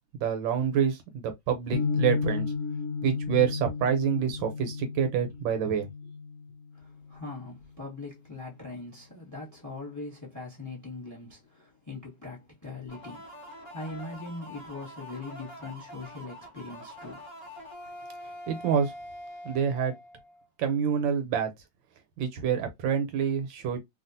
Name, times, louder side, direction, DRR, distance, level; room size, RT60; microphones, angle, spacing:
voice 1, 0.1-2.5 3.0-5.9 18.5-18.9 19.4-19.9 20.6-21.5 22.2-23.8, right 7 dB, 75° right, 1.4 m, -27 dB
sound 1, 1.7-7.8, left 4 dB, 75° left, 0.8 m, -33 dB
voice 2, 6.7-17.3, left 3 dB, 15° left, 0.8 m, -41 dB
sound 2, 12.9-20.5, equal, 45° left, 1.6 m, -45 dB
3.4 x 2.4 x 2.6 m
omnidirectional pair, 2.2 m